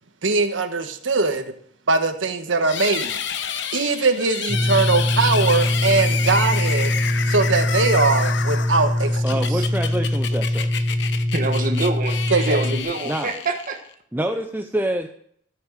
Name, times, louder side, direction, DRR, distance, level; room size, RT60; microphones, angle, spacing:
voice 1, 0.2-1.5 1.9-3.2 3.7-6.9 7.3-9.4 12.3-12.6, right 3 dB, 80° right, 7 dB, 1.3 m, -21 dB
sound 1, 2.6-13.9, left 7 dB, 65° left, 1.0 m, -30 dB
sound 2, 4.5-12.8, left 1 dB, 30° right, 1.5 m, -22 dB
voice 2, 9.2-10.7 13.0-13.3 14.1-15.1, right 1 dB, 10° right, 4 dB, 0.7 m, -26 dB
voice 3, 11.3-13.8, right 3 dB, 45° right, 4 dB, 1.3 m, -26 dB
14.0 x 6.2 x 7.5 m, 0.66 s
head